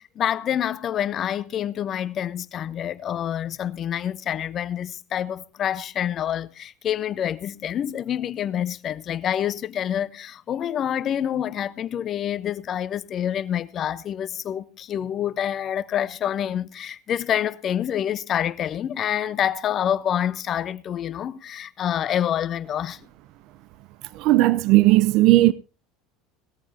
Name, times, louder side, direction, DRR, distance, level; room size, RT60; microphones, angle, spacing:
voice 1, 0.0-23.0, left 10 dB, 45° left, 0.8 m, -27 dB
voice 2, 24.1-25.5, right 17 dB, 60° right, 0.6 m, -16 dB
19.0 x 14.0 x 2.8 m
hypercardioid pair, 80°, 0 cm